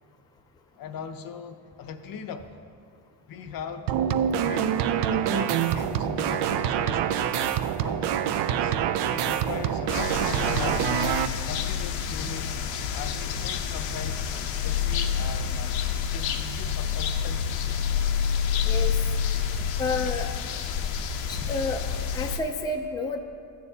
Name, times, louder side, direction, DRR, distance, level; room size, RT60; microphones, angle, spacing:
voice 1, 0.8-2.5 3.3-4.8 5.1-8.7 9.1-12.6 12.9-15.7 16.1-17.8, left 6 dB, 50° left, 8 dB, 0.6 m, -39 dB
sound 1, 3.9-11.3, right 9 dB, 65° right, 0.5 m, -26 dB
sound 2, 9.9-22.4, left 7 dB, 85° left, 0.8 m, -28 dB
voice 2, 19.8-20.3 21.3-21.8 22.1-23.2, left 3 dB, 10° left, 3 dB, 0.4 m, -29 dB
13.5 x 9.0 x 2.8 m, 2.3 s
cardioid pair, 140°, 45 cm